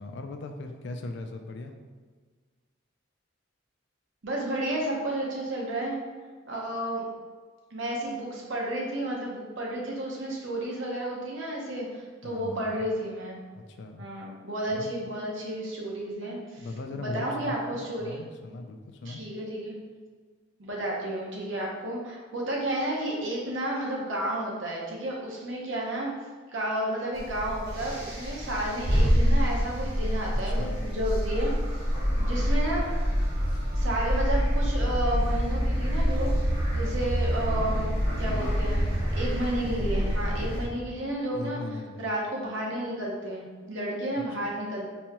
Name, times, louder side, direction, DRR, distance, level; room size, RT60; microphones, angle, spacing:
voice 1, 0.0-1.7 12.2-12.8 13.5-14.1 14.7-14.9 16.6-17.6 18.0-19.2 30.5-30.8 33.5-33.6 40.4-40.7 41.3-42.1 44.4-44.5, left 2 dB, 65° left, 5 dB, 0.4 m, -39 dB
voice 2, 4.2-6.0 6.5-7.0 7.7-13.4 14.0-16.7 17.0-18.2 19.0-19.8 20.6-26.1 26.5-31.5 32.2-32.9 33.7-36.4 36.7-38.8 39.1-41.6 42.0-44.8, right 1 dB, 80° right, -3 dB, 0.9 m, -32 dB
sound 1, 27.1-40.7, equal, 60° right, 1.2 m, -26 dB
4.1 x 2.3 x 2.9 m, 1.5 s
head